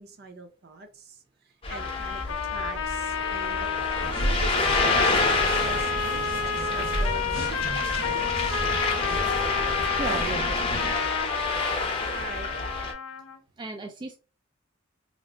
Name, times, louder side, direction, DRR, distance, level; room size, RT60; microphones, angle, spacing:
voice 1, 0.0-8.6 10.1-10.4 12.0-12.5, right 3 dB, 55° right, 6 dB, 0.6 m, -42 dB
Ocean, 1.6-12.9, left 3 dB, 30° left, 0.7 m, -29 dB
sound 1, 1.7-13.4, left 6 dB, 85° left, 0.5 m, -30 dB
sound 2, 4.0-10.9, right 1 dB, 70° right, 1.3 m, -33 dB
voice 2, 9.9-10.6 13.6-14.1, right 3 dB, 25° right, 4 dB, 0.3 m, -35 dB
3.1 x 2.0 x 3.7 m, 0.32 s
head